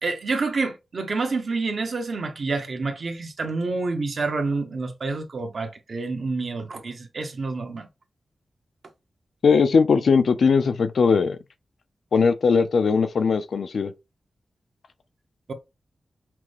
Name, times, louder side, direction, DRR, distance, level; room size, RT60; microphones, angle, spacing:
voice 1, 0.0-7.9, right 3 dB, 50° right, 0.9 m, -28 dB
voice 2, 9.4-11.4 12.1-13.9, left 5 dB, 70° left, 0.5 m, -19 dB
5.9 x 2.2 x 3.2 m
wide cardioid pair, 170°, 0 cm